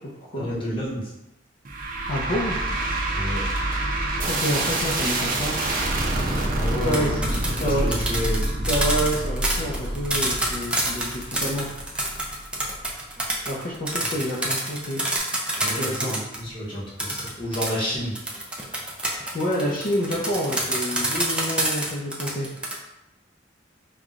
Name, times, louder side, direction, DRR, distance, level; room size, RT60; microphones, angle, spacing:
voice 1, 0.3-1.1 3.1-3.5 6.5-8.6 15.5-18.2, equal, 30° left, -5 dB, 1.0 m, -30 dB
sound 1, 1.7-12.9, right 1 dB, 50° right, 0.6 m, -27 dB
voice 2, 2.1-2.6 4.2-5.5 6.8-7.1 7.6-8.0 8.7-11.7 13.5-15.0 15.8-16.1 19.3-22.5, equal, 50° left, -6 dB, 0.6 m, -28 dB
OM-FR-rulers, 6.8-16.4 17.0-22.7, right 1 dB, 5° right, 0.5 m, -27 dB
5.5 x 2.3 x 2.4 m, 0.93 s
head